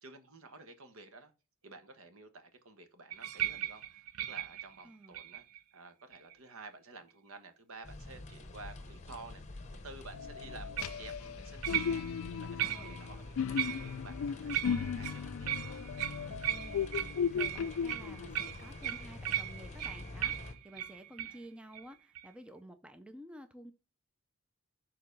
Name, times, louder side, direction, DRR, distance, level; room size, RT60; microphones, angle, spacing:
voice 1, 0.0-1.3 1.6-5.4 5.7-15.9 21.3-21.4, right 3 dB, 65° right, 1.1 m, -52 dB
sound 1, 3.1-5.6 6.1-6.5 10.8-11.0 11.6-12.2 12.6-13.1 13.6-14.1 14.5-21.4 21.7-21.9 22.1-22.3, right 12 dB, 80° right, 0.5 m, -38 dB
voice 2, 4.8-5.2 12.6-13.0 16.3-23.7, right 1 dB, 5° right, 0.4 m, -52 dB
sound 2, 7.8-20.5, left 2 dB, 30° left, 0.9 m, -47 dB
sound 3, 10.1-18.5, left 7 dB, 65° left, 0.3 m, -37 dB
6.7 x 3.9 x 5.2 m
head